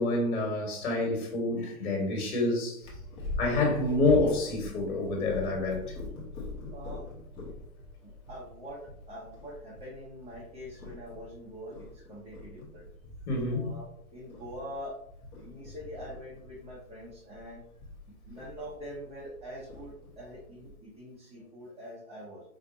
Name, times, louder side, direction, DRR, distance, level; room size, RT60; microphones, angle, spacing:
voice 1, 0.0-2.9 3.4-5.9 13.3-13.7, left 2 dB, 50° left, 1.5 m, -28 dB
Purr, 2.8-20.7, left 2 dB, 15° left, 0.6 m, -43 dB
voice 2, 6.7-7.0 8.0-8.8 9.1-12.9 13.5-14.9 15.3-17.6 18.3-22.4, equal, 15° right, 1.1 m, -44 dB
4.3 x 2.5 x 2.6 m
hypercardioid pair, 125°, 42 cm